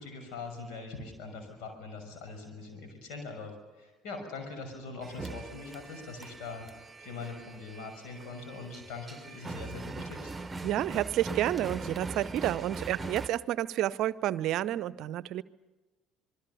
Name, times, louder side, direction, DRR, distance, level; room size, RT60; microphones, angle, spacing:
voice 1, 0.0-10.3, left 3 dB, 65° left, 5 dB, 6.2 m, -42 dB
sound 1, 5.0-13.3, right 3 dB, 20° right, 1.3 m, -41 dB
voice 2, 10.6-15.4, right 13 dB, 60° right, 19 dB, 0.7 m, -30 dB
26.5 x 22.0 x 7.0 m, 1.2 s
figure-of-eight pair, 55°, 0 cm